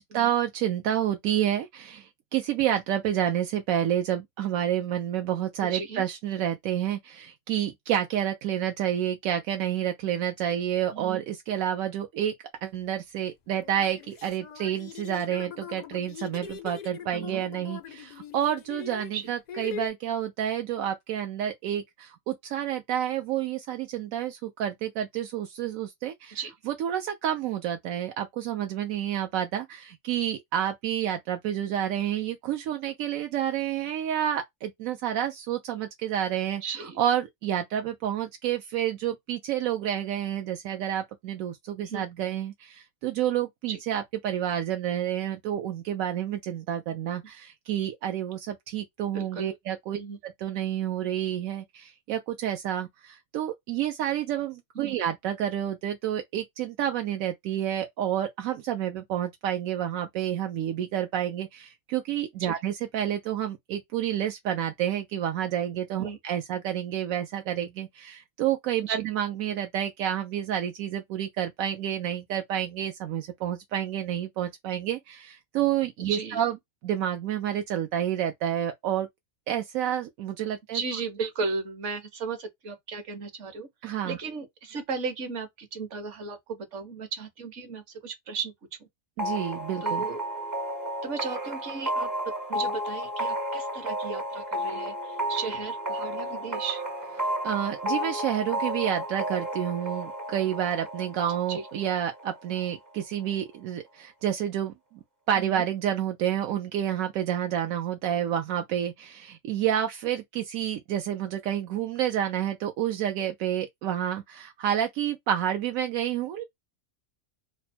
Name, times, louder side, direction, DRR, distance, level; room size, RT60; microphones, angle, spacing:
voice 1, 0.0-12.3 12.6-26.4 26.7-36.6 37.0-76.6 76.8-79.1 79.5-80.8 83.8-84.2 89.2-90.0 97.2-104.7 105.3-116.4, right 10 dB, 85° right, 1.0 m, -29 dB
voice 2, 5.6-6.0 10.9-11.2 17.1-17.4 19.1-19.3 26.3-26.5 36.6-37.0 41.8-42.0 43.7-43.8 49.1-49.5 49.9-50.2 54.7-55.0 62.4-62.5 66.0-66.2 68.8-69.0 76.0-76.4 80.7-83.7 84.0-88.5 88.8-88.9 89.8-90.2 91.0-92.1 92.5-96.8 101.5-101.7 105.3-105.6, right 5 dB, 65° right, 1.3 m, -35 dB
sound 1, 12.7-12.8 13.5-19.9, left 8 dB, 85° left, 0.3 m, -41 dB
sound 2, 89.2-102.7, equal, 25° right, 0.4 m, -32 dB
3.2 x 2.1 x 4.2 m
omnidirectional pair, 1.4 m